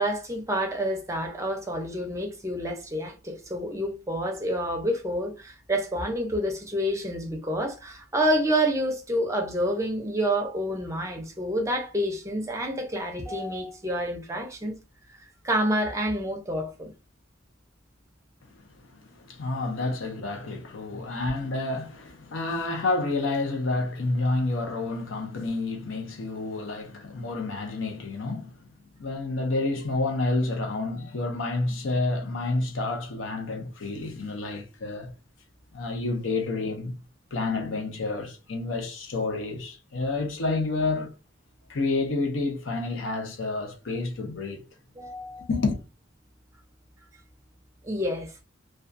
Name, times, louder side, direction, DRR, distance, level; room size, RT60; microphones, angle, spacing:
voice 1, 0.0-14.8 15.4-16.9 45.0-45.5 47.8-48.3, equal, 15° right, 0.6 m, -28 dB
voice 2, 18.5-28.6 29.0-35.1 35.7-37.0 37.3-41.1 41.7-44.7 45.5-45.8, left 3 dB, 75° left, 0.6 m, -29 dB
2.3 x 2.3 x 2.5 m
head